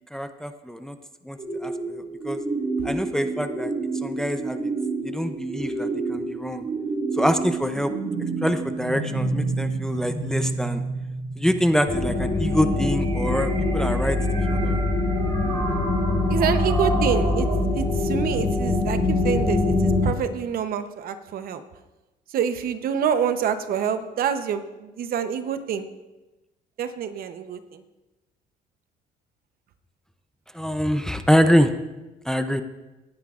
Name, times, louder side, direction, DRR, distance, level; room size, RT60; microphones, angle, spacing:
voice 1, 0.1-1.0 1.2-2.4 2.8-3.7 4.0-4.7 5.0-6.7 7.1-7.9 8.4-10.8 11.4-14.2 14.5-14.8 30.5-31.7 32.3-32.6, equal, 5° left, 8 dB, 0.6 m, -25 dB
sound 1, 1.4-17.6, right 3 dB, 40° right, 3.5 m, -30 dB
sound 2, 11.9-20.1, left 2 dB, 60° left, 3.0 m, -23 dB
voice 2, 16.3-17.5 17.7-21.6 22.3-25.9 26.8-27.6, right 8 dB, 60° right, 10 dB, 0.8 m, -26 dB
18.5 x 9.6 x 2.5 m, 1.1 s
cardioid pair, 110°, 17 cm